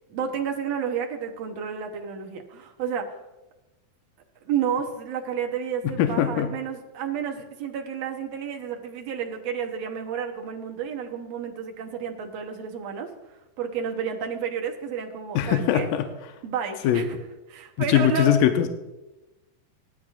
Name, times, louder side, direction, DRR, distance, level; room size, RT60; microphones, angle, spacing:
voice 1, 0.1-3.2 4.5-13.1 13.6-15.9 16.4-17.2 17.5-18.4, right 7 dB, 65° right, 4 dB, 1.9 m, -31 dB
voice 2, 5.8-6.5 15.4-16.1 16.8-17.1 17.9-18.7, left 10 dB, 80° left, 6 dB, 2.3 m, -21 dB
17.5 x 12.0 x 2.5 m, 1.0 s
omnidirectional pair, 3.9 m